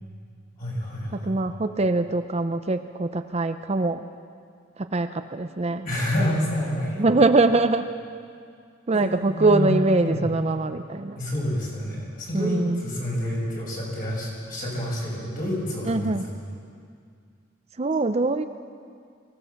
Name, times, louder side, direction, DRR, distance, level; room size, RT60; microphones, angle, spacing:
voice 1, 0.6-1.3 5.8-7.1 8.9-9.7 10.1-10.2 11.2-16.1, left 1 dB, 45° left, -4 dB, 7.3 m, -28 dB
voice 2, 1.1-4.1 4.8-5.8 7.0-7.9 8.9-11.2 12.3-12.9 15.8-16.3 17.8-18.5, right 2 dB, 35° right, 9 dB, 0.6 m, -23 dB
24.0 x 17.0 x 7.1 m, 2.2 s
head